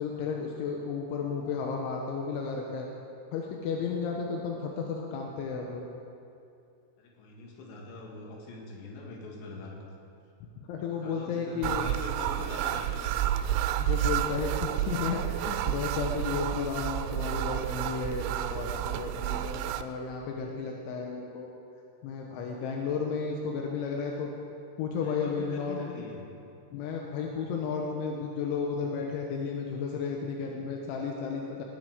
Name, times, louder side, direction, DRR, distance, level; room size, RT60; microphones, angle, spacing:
voice 1, 0.0-2.9 3.3-5.9 10.7-11.9 13.8-21.5 22.0-24.3 24.8-25.8 26.7-31.6, left 5 dB, 90° left, 0 dB, 3.5 m, -33 dB
voice 2, 7.0-9.9 11.0-13.4 25.0-26.3, left 3 dB, 70° left, -1 dB, 4.1 m, -43 dB
sound 1, 11.6-19.8, right 12 dB, 85° right, 2.9 m, -30 dB
19.0 x 11.0 x 5.0 m, 2.6 s
omnidirectional pair, 5.3 m